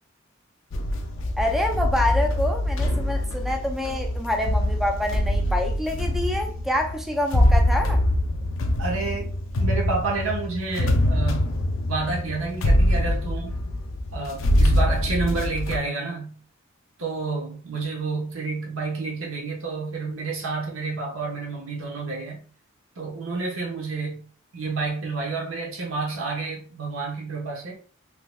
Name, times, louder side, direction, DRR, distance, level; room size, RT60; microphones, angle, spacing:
sound 1, 0.7-15.8, left 1 dB, 70° left, 0.5 m, -24 dB
voice 1, 1.4-8.0, left 1 dB, ahead, 0.4 m, -27 dB
voice 2, 8.8-9.3 9.6-11.6 11.9-13.6 14.1-16.4 17.0-22.4 23.0-24.2 24.5-27.8, right 4 dB, 85° right, 1.1 m, -29 dB
3.8 x 2.7 x 2.2 m
head